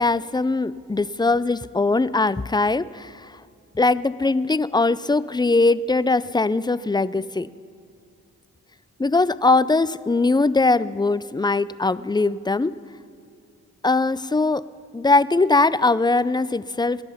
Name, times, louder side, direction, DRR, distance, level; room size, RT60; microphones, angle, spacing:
voice 1, 0.0-3.3 3.8-7.5 9.0-12.7 13.8-14.6 14.9-17.0, left 3 dB, 15° left, 17 dB, 0.4 m, -21 dB
19.0 x 11.5 x 5.7 m, 2.4 s
cardioid pair, 55°, 32 cm